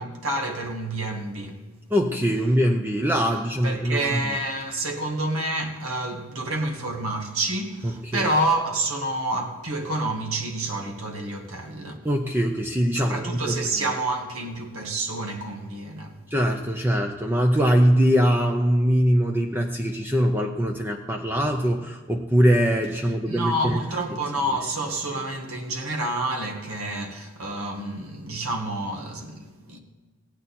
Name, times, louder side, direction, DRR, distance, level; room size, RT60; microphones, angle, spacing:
voice 1, 0.0-1.6 3.6-12.0 12.9-16.2 23.3-29.8, right 1 dB, 90° right, 1.5 m, -28 dB
voice 2, 1.9-4.2 7.8-8.3 12.0-13.6 16.3-23.8, equal, 10° right, 0.5 m, -22 dB
16.5 x 8.9 x 4.2 m
head